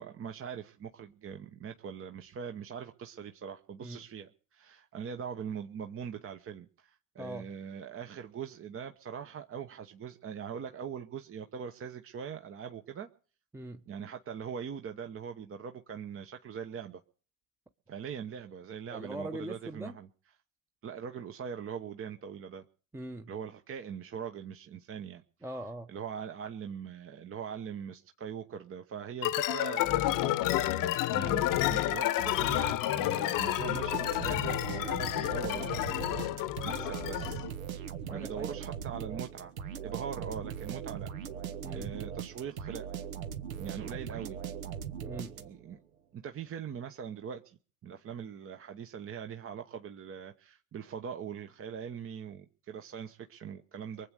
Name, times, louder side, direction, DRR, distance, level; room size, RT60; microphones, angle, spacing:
voice 1, 0.0-13.1 13.9-17.0 17.9-20.1 20.8-22.7 23.3-25.2 25.9-36.1 36.6-37.4 38.1-39.5 39.8-41.1 41.7-42.9 43.5-44.4 45.4-45.8 46.1-54.1, right 7 dB, 30° right, 6 dB, 1.0 m, -42 dB
voice 2, 7.2-7.5 13.5-13.8 18.9-19.9 22.9-23.3 25.4-25.9 38.1-38.6 41.6-41.9 45.0-45.4, right 1 dB, 5° right, 5 dB, 0.9 m, -41 dB
sound 1, 29.2-37.5, left 14 dB, 50° left, 1.0 m, -30 dB
sound 2, 33.6-45.8, right 8 dB, 80° right, 1.4 m, -40 dB
23.5 x 8.1 x 6.4 m, 0.41 s
hypercardioid pair, 70°, 41 cm